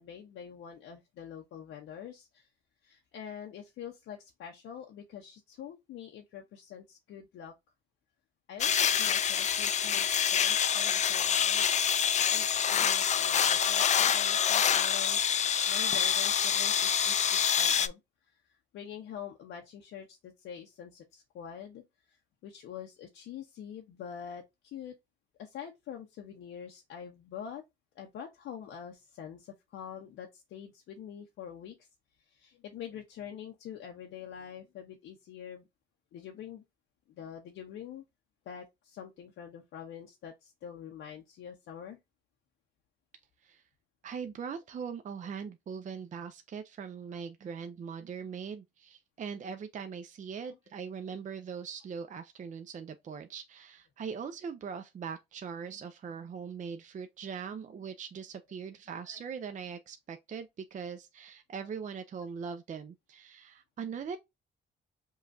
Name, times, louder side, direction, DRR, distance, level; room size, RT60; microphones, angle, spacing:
voice 1, 0.0-2.5 2.8-7.5 8.5-11.7 12.3-15.4 15.7-18.0 18.3-22.2 22.4-25.0 25.4-27.6 28.0-31.8 32.2-35.6 36.1-36.6 37.1-38.0 38.5-42.0 50.5-50.6 59.0-59.2, left 8 dB, 80° left, 0.7 m, -45 dB
sound 1, 8.6-17.9, left 8 dB, 35° left, 0.4 m, -26 dB
voice 2, 44.0-64.2, right 6 dB, 40° right, 0.5 m, -41 dB
5.4 x 2.3 x 2.6 m
cardioid pair, 90°, 20 cm